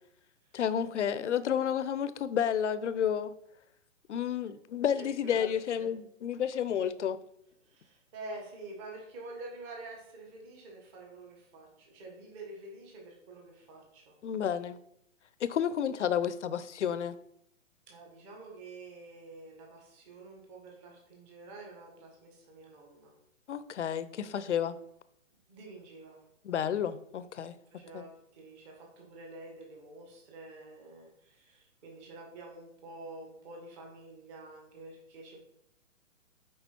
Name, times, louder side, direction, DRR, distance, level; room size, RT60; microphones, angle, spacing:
voice 1, 0.5-3.3 4.1-7.2 14.2-14.8 15.4-17.2 23.5-24.8 26.4-27.6 27.9-28.0, left 8 dB, 60° left, 15 dB, 0.7 m, -31 dB
voice 2, 4.9-5.5 5.7-5.9 7.6-14.1 17.9-23.1 25.5-26.2 27.7-35.5, right 2 dB, 20° right, -1 dB, 1.6 m, -48 dB
7.0 x 5.0 x 4.4 m, 0.75 s
hypercardioid pair, 155°, 40 cm